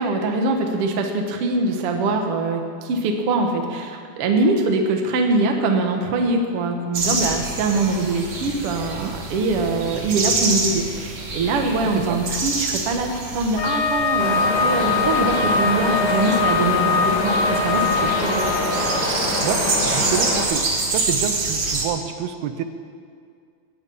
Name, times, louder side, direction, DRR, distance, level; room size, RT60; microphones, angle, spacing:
voice 1, 0.0-18.4, right 3 dB, 60° right, 3 dB, 1.5 m, -23 dB
sound 1, 6.9-21.9, right 3 dB, 45° right, 2.1 m, -27 dB
Wind instrument woodwind instrument, 13.6-18.7, left 4 dB, 75° left, 3.6 m, -22 dB
Wind, 14.2-20.4, left 2 dB, 50° left, 1.4 m, -25 dB
voice 2, 19.9-20.6 20.9-22.6, right 9 dB, 85° right, 9 dB, 2.8 m, -27 dB
19.0 x 10.5 x 5.6 m, 2.2 s
omnidirectional pair, 4.5 m